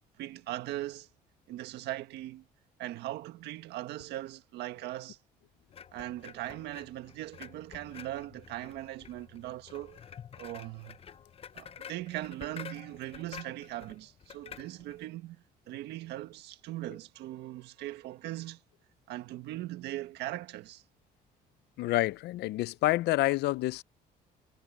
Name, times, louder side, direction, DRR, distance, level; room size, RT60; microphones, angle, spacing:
voice 1, 0.2-1.1 1.5-2.4 2.8-5.2 5.9-10.0 10.4-11.0 11.5-18.6 19.1-20.8, right 15 dB, 80° right, 1.6 m, -40 dB
sound 1, 5.7-15.1, left 8 dB, 35° left, 0.7 m, -49 dB
voice 2, 21.8-23.8, left 17 dB, 75° left, 0.6 m, -28 dB
cardioid pair, 110°, 17 cm